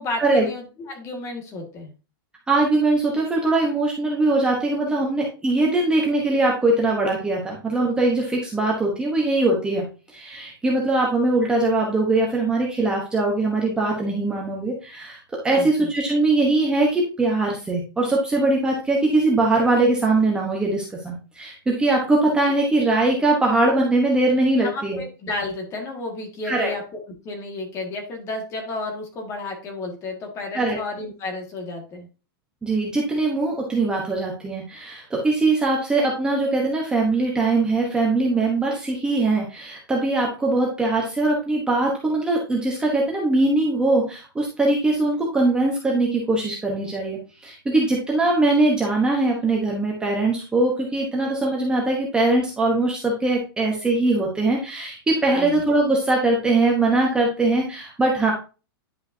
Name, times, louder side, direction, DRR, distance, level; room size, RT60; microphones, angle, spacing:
voice 1, 0.0-1.9 15.5-15.9 24.6-27.0 27.2-32.1 55.3-55.5, left 2 dB, 20° left, 2 dB, 1.8 m, -32 dB
voice 2, 2.5-15.2 15.4-25.0 26.4-26.7 30.5-30.8 32.6-58.3, right 2 dB, 5° right, -1 dB, 1.0 m, -21 dB
10.0 x 5.5 x 2.7 m, 0.33 s
supercardioid pair, 165°, 13 cm